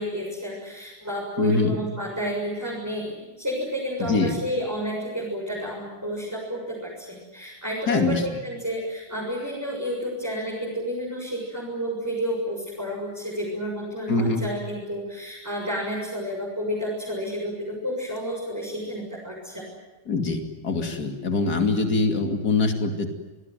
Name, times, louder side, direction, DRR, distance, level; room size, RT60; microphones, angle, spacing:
voice 1, 0.0-19.6, equal, 10° right, -4 dB, 7.2 m, -31 dB
voice 2, 1.4-1.8 4.0-4.4 7.9-8.2 14.1-14.4 20.1-23.1, left 3 dB, 60° left, 5 dB, 3.1 m, -23 dB
27.5 x 20.5 x 9.3 m, 1.1 s
omnidirectional pair, 1.9 m